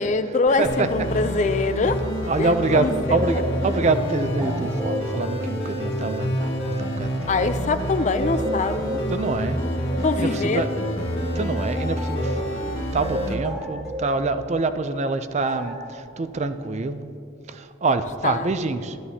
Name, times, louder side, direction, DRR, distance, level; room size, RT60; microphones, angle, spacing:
voice 1, 0.0-2.0 2.4-3.2 7.3-9.0 10.0-10.6 18.2-18.5, left 3 dB, 35° left, 10 dB, 0.4 m, -24 dB
sound 1, 0.6-13.3, equal, 80° left, 1.8 m, -28 dB
voice 2, 2.3-7.3 9.1-9.6 10.2-10.8 11.3-17.1 17.5-19.0, right 3 dB, 35° right, 11 dB, 0.4 m, -26 dB
sound 2, 2.7-7.7 8.1-12.5 13.0-14.5 15.5-15.9, equal, ahead, 1.6 m, -33 dB
12.5 x 12.5 x 2.8 m, 2.8 s
head